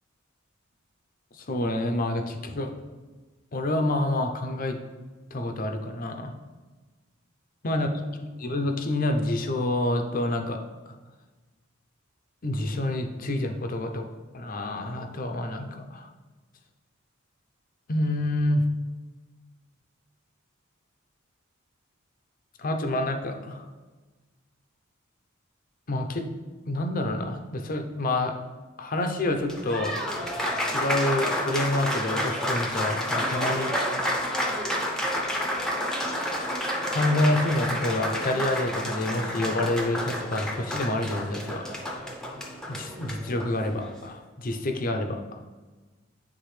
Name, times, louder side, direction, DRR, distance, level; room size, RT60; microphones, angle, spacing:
voice 1, 1.3-2.7 3.5-4.8 5.3-6.3 7.6-7.9 8.4-10.6 12.4-14.1 14.3-16.1 17.9-18.6 22.6-23.7 25.9-26.3 26.7-28.3 28.8-29.9 30.6-33.7 36.9-41.8 42.7-45.2, left 1 dB, 40° left, 5 dB, 0.6 m, -28 dB
Applause, 29.3-44.0, left 1 dB, 5° left, 0.7 m, -30 dB
10.0 x 3.6 x 3.2 m, 1.3 s
head